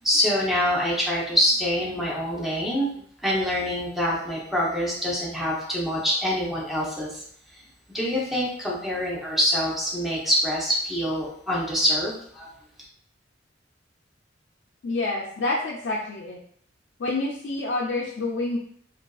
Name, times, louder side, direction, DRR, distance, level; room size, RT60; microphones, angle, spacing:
voice 1, 0.0-7.2 7.5-7.6 7.9-12.5, equal, ahead, -5 dB, 0.6 m, -25 dB
voice 2, 14.8-16.4 17.0-18.6, left 2 dB, 70° left, -3 dB, 0.4 m, -28 dB
2.4 x 2.3 x 2.3 m, 0.62 s
head